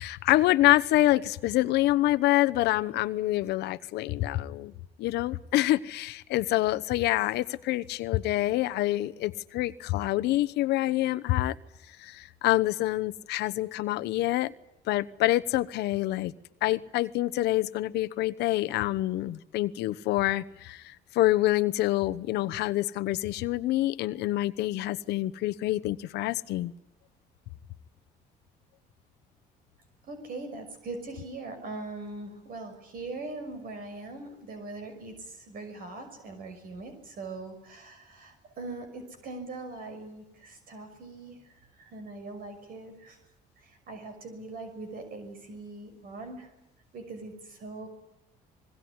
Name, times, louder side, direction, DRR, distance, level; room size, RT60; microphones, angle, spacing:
voice 1, 0.0-4.7 5.0-11.5 12.0-14.5 14.9-16.3 16.6-26.7, left 16 dB, 85° left, 14 dB, 1.0 m, -26 dB
voice 2, 30.0-43.2 43.6-46.5 46.9-47.9, right 3 dB, 60° right, 7 dB, 6.1 m, -41 dB
26.0 x 21.0 x 9.7 m, 0.87 s
cardioid pair, 110°, 17 cm